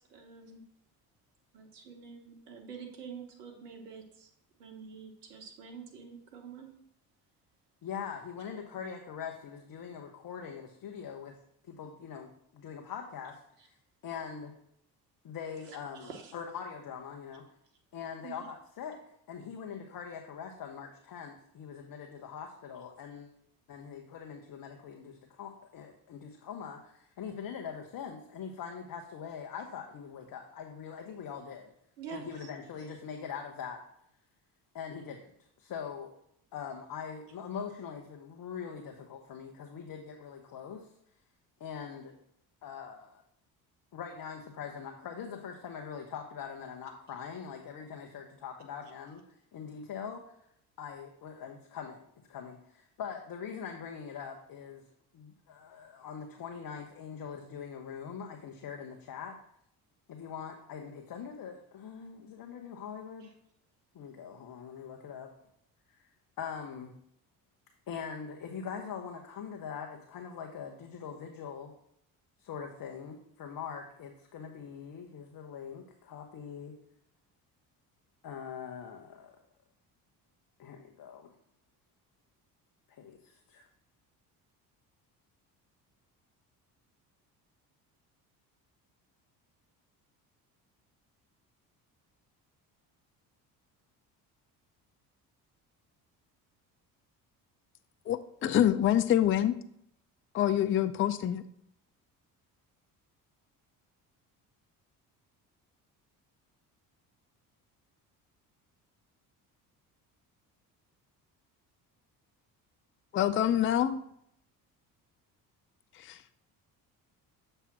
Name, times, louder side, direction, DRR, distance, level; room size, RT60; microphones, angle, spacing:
voice 1, 0.1-0.6 1.5-4.3 4.6-6.7 15.6-16.3 18.2-18.5 32.0-32.5 63.2-63.3, right 6 dB, 85° right, 3 dB, 1.1 m, -47 dB
voice 2, 7.8-11.3 11.7-13.7 14.0-14.5 15.2-17.4 17.9-19.0 19.3-23.3 23.7-31.7 32.1-33.8 34.7-35.3 35.6-36.1 36.5-40.9 41.6-42.1 42.6-43.2 43.9-49.2 49.5-50.3 50.8-52.0 52.3-54.8 55.1-59.4 60.1-63.3 63.9-65.3 65.9-66.1 66.4-66.9 67.9-71.7 72.4-76.7 78.2-79.3 80.6-81.3 82.9-83.7, left 7 dB, 45° left, 3 dB, 1.1 m, -42 dB
voice 3, 98.1-99.5 100.3-101.4 113.1-114.0 116.0-116.2, left 11 dB, 30° left, 12 dB, 0.5 m, -26 dB
7.2 x 3.4 x 5.9 m, 0.73 s
hypercardioid pair, 55°, 46 cm